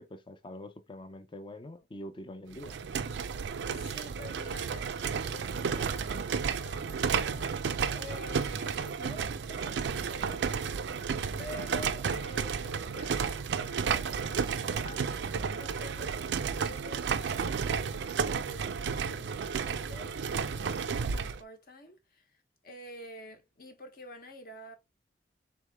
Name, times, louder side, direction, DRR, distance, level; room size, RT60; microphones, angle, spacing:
voice 1, 0.0-2.8, left 1 dB, 30° left, 0.5 m, -44 dB
sound 1, 2.5-21.4, right 6 dB, 80° right, 0.4 m, -32 dB
voice 2, 3.7-10.7 11.4-16.2 16.6-24.8, left 1 dB, 55° left, 1.0 m, -49 dB
3.7 x 3.3 x 3.4 m
head